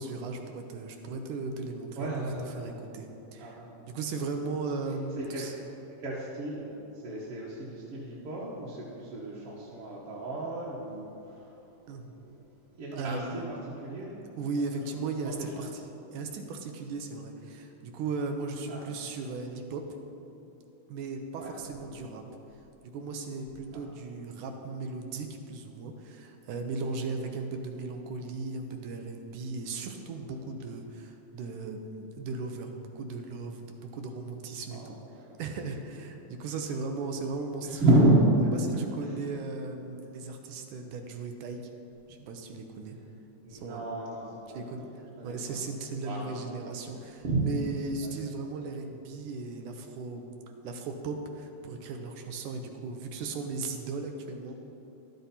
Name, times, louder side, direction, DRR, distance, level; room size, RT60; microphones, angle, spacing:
voice 1, 0.0-2.1 2.6-3.6 3.9-5.6 11.9-12.2 12.9-13.6 14.4-15.8 16.1-19.8 20.9-22.2 22.8-35.0 35.4-37.9 38.6-41.6 42.1-43.0 43.5-43.9 44.5-50.3 50.6-54.5, right 3 dB, 80° right, 4 dB, 2.1 m, -37 dB
voice 2, 2.0-2.8 3.4-3.8 5.2-5.5 6.0-11.7 12.2-12.4 12.7-13.4 13.8-14.3 14.7-14.8 15.2-15.3 18.7-18.9 21.4-21.5 23.7-23.8 34.7-35.3 37.6-38.5 39.0-39.1 40.8-40.9 43.4-44.9 45.2-45.6 46.0-46.3 46.6-47.4 48.0-48.1, right 1 dB, 55° right, -7 dB, 1.7 m, -30 dB
12.0 x 7.9 x 4.2 m, 2.9 s
omnidirectional pair, 3.6 m